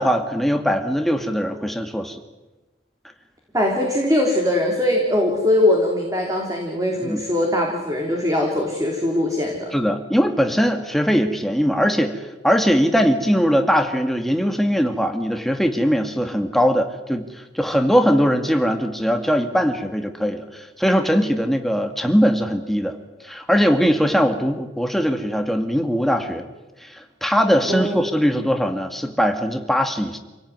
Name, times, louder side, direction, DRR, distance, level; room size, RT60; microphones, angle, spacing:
voice 1, 0.0-2.2 7.0-7.2 9.7-23.0 23.2-26.5 26.8-30.2, equal, ahead, 5 dB, 2.0 m, -20 dB
voice 2, 3.5-9.7 27.6-28.0, left 1 dB, 20° right, 0 dB, 3.5 m, -21 dB
28.0 x 17.5 x 9.6 m, 1.1 s
head